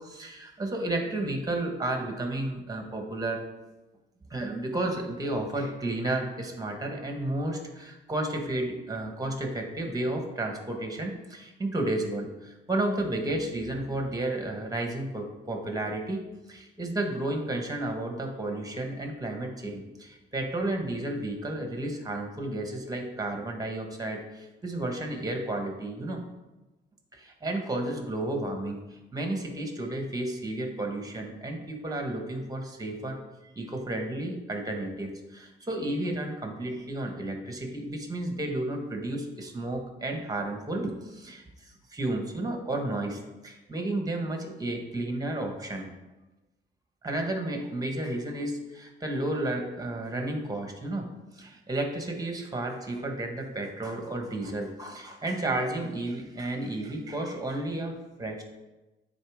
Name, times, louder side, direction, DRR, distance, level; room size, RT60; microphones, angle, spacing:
voice 1, 0.0-3.5 4.3-16.2 16.5-26.2 27.1-45.9 47.0-51.1 51.3-57.9 58.2-58.4, right 1 dB, 20° right, 3 dB, 1.4 m, -32 dB
9.3 x 4.3 x 3.6 m, 1.1 s
cardioid pair, 90°, 20 cm